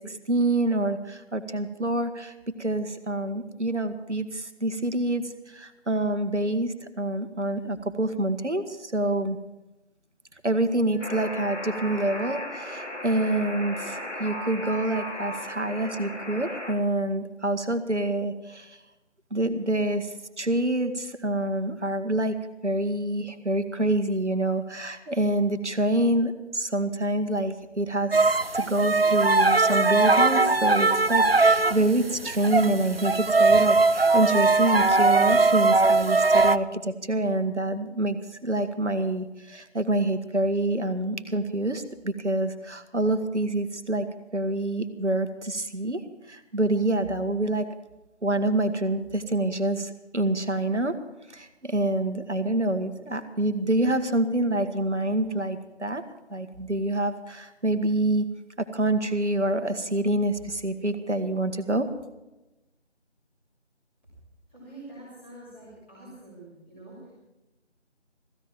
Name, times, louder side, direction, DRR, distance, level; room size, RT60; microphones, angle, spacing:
voice 1, 0.1-2.3 2.6-9.4 10.4-18.8 19.3-22.3 22.6-44.1 44.3-46.0 46.3-47.6 48.2-51.0 51.3-56.0 56.3-58.2 58.6-61.9, right 1 dB, 75° right, 8 dB, 1.6 m, -27 dB
Alarm, 11.0-16.7, left 1 dB, 85° left, 3.1 m, -36 dB
sound 1, 28.1-31.9 32.3-36.6, right 3 dB, 55° right, 0.6 m, -20 dB
voice 2, 64.5-67.1, right 2 dB, 10° left, -12 dB, 4.4 m, -46 dB
16.0 x 15.5 x 4.5 m, 1.0 s
figure-of-eight pair, 175°, 35 cm